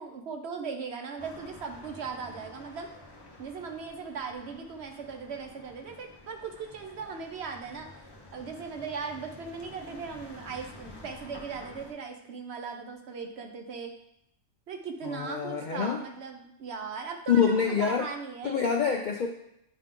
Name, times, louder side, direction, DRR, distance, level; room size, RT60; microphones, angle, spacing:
voice 1, 0.0-2.9 3.4-7.9 8.3-13.9 14.7-18.6, right 5 dB, 60° right, 4 dB, 0.8 m, -38 dB
Cusco street traffic, 1.2-11.9, left 1 dB, 25° left, 0.6 m, -50 dB
voice 2, 15.0-16.0 17.3-18.0 18.4-19.3, left 6 dB, 85° left, 2 dB, 0.4 m, -26 dB
8.3 x 3.5 x 3.7 m, 0.79 s
omnidirectional pair, 1.4 m